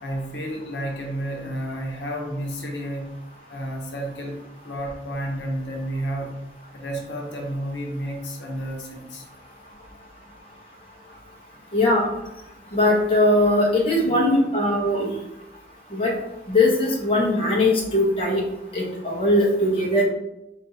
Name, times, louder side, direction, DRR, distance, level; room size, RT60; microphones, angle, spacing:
voice 1, 0.0-3.1 3.5-4.4 4.6-6.4 6.7-9.3 14.1-14.2, right 1 dB, 90° left, 0 dB, 0.8 m, -31 dB
voice 2, 11.7-12.1 12.7-15.1 15.9-16.1 16.5-18.4 18.7-20.0, left 1 dB, 30° left, -3 dB, 0.9 m, -20 dB
4.3 x 3.2 x 2.8 m, 0.89 s
head